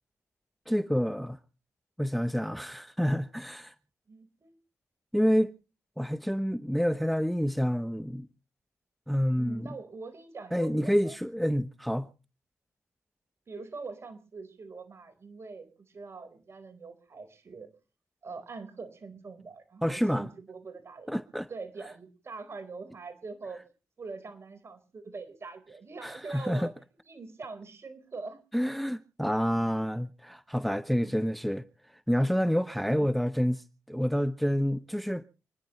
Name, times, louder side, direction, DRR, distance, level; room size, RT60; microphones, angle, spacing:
voice 1, 0.7-1.4 2.0-3.7 5.1-5.5 6.0-8.3 9.1-9.7 10.5-12.1 19.8-20.3 21.1-21.5 26.0-26.7 28.5-31.6 32.1-35.2, equal, ahead, 0.8 m, -28 dB
voice 2, 4.1-4.5 9.4-11.1 13.5-17.7 18.2-21.1 21.5-23.6 24.0-26.7 27.1-28.8 31.0-31.2, right 4 dB, 45° right, 4.3 m, -43 dB
29.0 x 10.5 x 3.1 m
cardioid pair, 65°, 6 cm